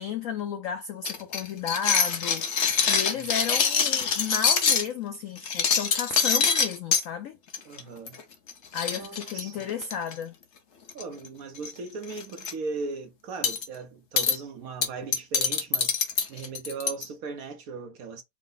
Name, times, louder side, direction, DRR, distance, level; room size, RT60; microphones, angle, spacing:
voice 1, 0.0-7.4 8.7-10.3, left 8 dB, 80° left, 0.7 m, -33 dB
sound 1, 1.0-4.9 5.4-7.0 7.5-7.8 8.1-8.2 8.5-8.6 8.8-10.1 10.9-11.3 11.5-11.7 12.1-12.5 13.4-13.6 14.2-14.4 14.8-17.0, left 6 dB, 50° left, 0.9 m, -24 dB
voice 2, 7.7-8.2 8.9-9.6 10.9-16.0 16.3-18.2, right 4 dB, 65° right, 1.0 m, -38 dB
4.8 x 2.0 x 3.8 m
omnidirectional pair, 1.9 m